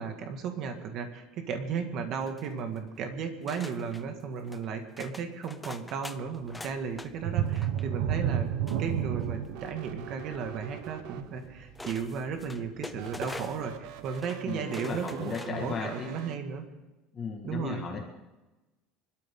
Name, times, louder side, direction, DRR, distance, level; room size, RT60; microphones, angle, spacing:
voice 1, 0.0-8.5 8.8-16.7 17.4-17.8, right 6 dB, 45° right, 5 dB, 1.9 m, -35 dB
sound 1, 2.2-2.9 3.5-4.0 4.4-4.7 5.0-7.1 7.4-7.8 8.7-9.5 10.8-10.9 11.8-13.7 14.0-14.4 14.7-15.7 16.1-16.2, left 2 dB, 5° left, 0.6 m, -44 dB
sound 2, 7.2-12.7 13.1-13.2 13.7-13.8, right 9 dB, 85° right, 1.3 m, -31 dB
sound 3, 9.5-11.7 12.9-16.4, right 11 dB, 65° right, 0.9 m, -45 dB
voice 2, 14.4-16.4 17.1-18.0, left 5 dB, 25° left, 1 dB, 1.9 m, -36 dB
24.5 x 13.0 x 3.8 m, 1.1 s
cardioid pair, 160°, 0 cm